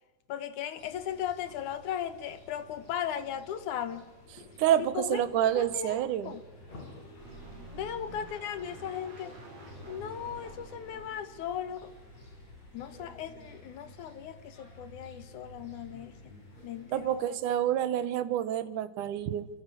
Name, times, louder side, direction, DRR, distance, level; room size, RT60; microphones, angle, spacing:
voice 1, 0.3-4.1 4.9-6.0 6.2-6.4 7.7-9.3 9.9-11.9 12.7-16.1 16.6-17.4, left 9 dB, 75° left, 2.8 m, -37 dB
sound 1, 0.8-17.2, left 1 dB, 60° left, 7.8 m, -52 dB
voice 2, 4.6-6.3 16.9-19.5, right 11 dB, 85° right, 2.6 m, -28 dB
sound 2, 7.2-12.1 12.6-12.7, right 2 dB, 55° right, 6.0 m, -49 dB
27.5 x 25.0 x 8.5 m
omnidirectional pair, 3.5 m